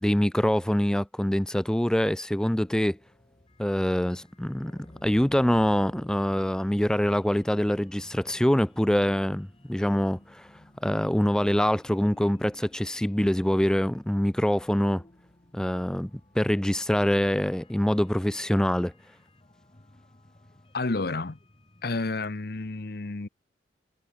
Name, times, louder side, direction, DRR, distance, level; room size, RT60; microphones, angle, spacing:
voice 1, 0.0-3.0 3.6-10.5 10.8-15.0 15.5-18.9, equal, 5° left, 0.3 m, -25 dB
sound 1, 2.3-22.2, left 1 dB, 30° left, 1.4 m, -55 dB
voice 2, 20.7-21.4 21.8-23.3, left 3 dB, 60° left, 0.9 m, -30 dB
head